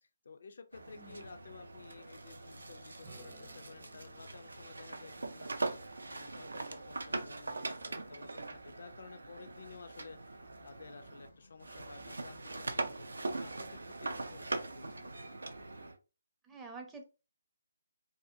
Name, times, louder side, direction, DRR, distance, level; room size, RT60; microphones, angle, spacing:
voice 1, 0.0-15.4, left 4 dB, 65° left, 8 dB, 0.4 m, -54 dB
sound 1, 0.7-15.9, left 1 dB, 90° left, 0.8 m, -65 dB
sound 2, 0.7-11.3 11.6-16.0, right 2 dB, 85° right, 0.4 m, -42 dB
Acoustic guitar / Strum, 3.0-6.8 11.6-11.7, right 3 dB, 50° right, 0.7 m, -62 dB
voice 2, 16.4-17.0, right 4 dB, 10° right, 2 dB, 0.5 m, -48 dB
2.6 x 2.0 x 2.6 m, 0.31 s
figure-of-eight pair, 150°, 0 cm